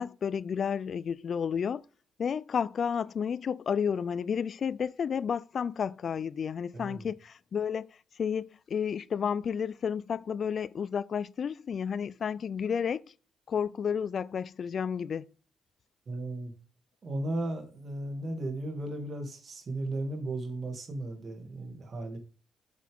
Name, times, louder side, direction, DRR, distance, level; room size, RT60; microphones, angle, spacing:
voice 1, 0.0-1.8 2.2-13.1 13.5-15.3, left 7 dB, 50° left, 0.3 m, -31 dB
voice 2, 6.7-7.1 16.1-16.5 17.0-22.2, right 2 dB, 45° right, 2.4 m, -35 dB
8.2 x 7.5 x 3.5 m
cardioid pair, 90°, 0 cm